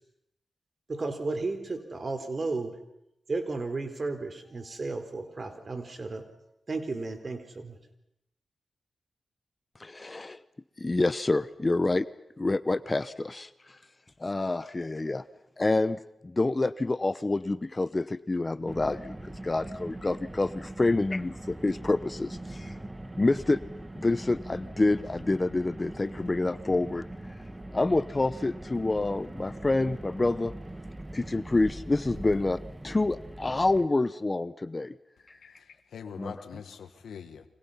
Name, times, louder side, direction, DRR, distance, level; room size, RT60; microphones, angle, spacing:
voice 1, 0.9-2.8 3.3-6.2 6.7-7.8, right 3 dB, 50° right, 8 dB, 4.2 m, -33 dB
voice 2, 9.8-10.4 10.8-12.1 12.4-13.5 14.2-15.2 15.6-19.1 19.4-20.5 20.8-22.7 23.2-23.6 23.9-27.1 27.7-30.5 31.1-35.0 36.1-36.3, left 2 dB, 30° left, 15 dB, 1.0 m, -27 dB
Car, 18.7-33.9, right 1 dB, 20° right, 1.8 m, -42 dB
voice 3, 35.3-37.4, left 7 dB, 85° left, 9 dB, 1.9 m, -43 dB
30.0 x 25.5 x 5.8 m, 0.80 s
cardioid pair, 55°, 0 cm